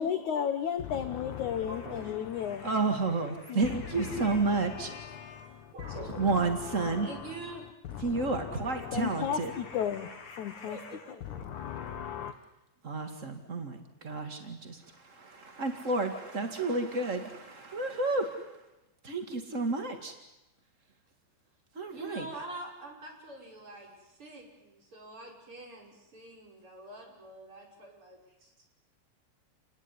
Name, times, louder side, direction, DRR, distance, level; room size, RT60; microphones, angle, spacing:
voice 1, 0.0-2.8 3.4-7.3 7.9-11.0 11.2-12.3, left 8 dB, 75° left, 1.7 m, -35 dB
voice 2, 1.7-2.5 4.9-5.0 5.3-5.4 5.7-6.3 7.0-7.7 10.6-11.4 21.9-28.5, right 2 dB, 30° right, 6.2 m, -46 dB
voice 3, 2.6-4.9 6.2-7.1 8.0-9.5 12.8-18.5 19.0-20.1 21.7-22.2, right 3 dB, 65° right, 0.7 m, -31 dB
29.5 x 20.0 x 9.8 m
omnidirectional pair, 5.2 m